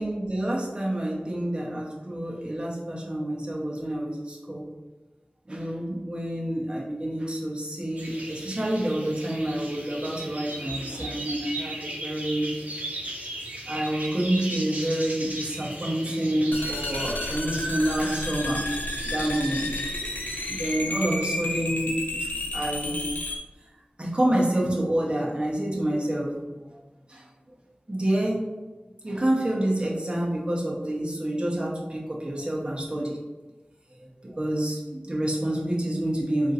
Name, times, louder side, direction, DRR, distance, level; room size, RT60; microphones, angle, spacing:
voice 1, 0.0-4.6 5.5-12.5 13.7-18.6 19.0-19.7 20.5-21.9 22.2-23.0 24.0-26.4 26.7-26.8 27.1-27.3 27.9-28.4 29.0-33.2 34.0-36.5, right 1 dB, 30° right, -4 dB, 0.9 m, -28 dB
sound 1, 8.0-20.8, right 1 dB, 55° right, 0.9 m, -37 dB
sound 2, 16.5-23.4, left 1 dB, 75° left, 0.6 m, -31 dB
3.6 x 2.5 x 4.1 m, 1.2 s
wide cardioid pair, 50°, 3 cm